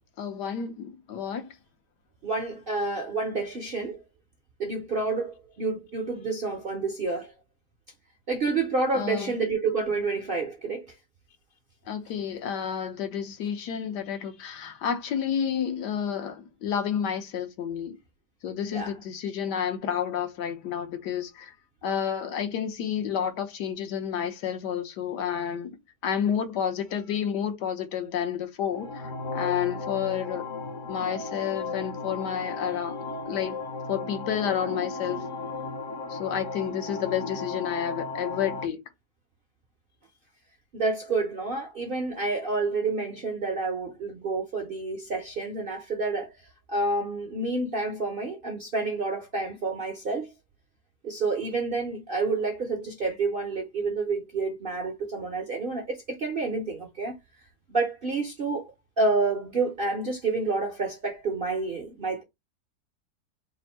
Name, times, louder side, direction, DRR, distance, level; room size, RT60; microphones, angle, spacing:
voice 1, 0.2-1.6 8.9-9.3 11.9-18.0 18.4-21.5 21.8-25.8 26.0-30.4 30.9-33.0 33.3-33.6 33.9-35.2 36.1-38.8, left 8 dB, 80° left, 1.4 m, -30 dB
voice 2, 2.2-4.0 4.6-7.3 8.3-10.9 18.7-18.9 40.7-50.3 51.0-57.2 57.7-62.2, right 3 dB, 50° right, 0.6 m, -29 dB
sound 1, 28.6-38.6, left 3 dB, 60° left, 1.0 m, -35 dB
3.5 x 2.5 x 4.2 m
omnidirectional pair, 1.8 m